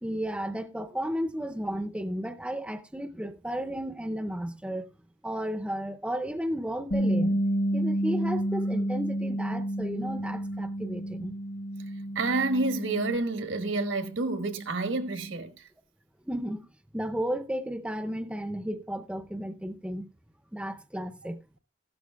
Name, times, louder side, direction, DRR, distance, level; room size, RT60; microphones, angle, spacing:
voice 1, 0.0-4.9 5.2-7.4 7.7-11.3 16.3-16.7 16.9-20.1 20.5-21.4, equal, 5° right, 0.5 m, -33 dB
Bass guitar, 6.9-13.2, right 1 dB, 60° left, 1.1 m, -30 dB
voice 2, 12.1-15.7, right 3 dB, 80° right, 1.4 m, -29 dB
15.0 x 12.5 x 2.3 m
head